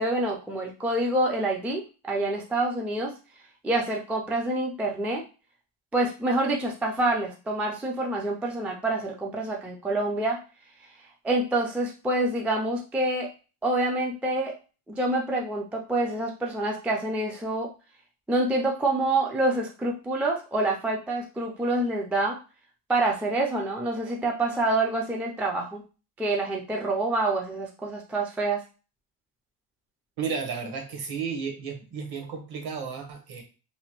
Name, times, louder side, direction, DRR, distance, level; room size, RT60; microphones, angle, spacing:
voice 1, 0.0-3.1 3.6-5.2 5.9-10.4 11.2-13.3 13.6-14.5 14.9-17.7 18.3-22.4 22.9-25.8 26.2-28.6, right 2 dB, 5° right, -1 dB, 0.3 m, -27 dB
voice 2, 30.2-33.4, right 6 dB, 50° right, 4 dB, 1.0 m, -33 dB
3.0 x 2.1 x 2.9 m, 0.34 s
cardioid pair, 110°, 48 cm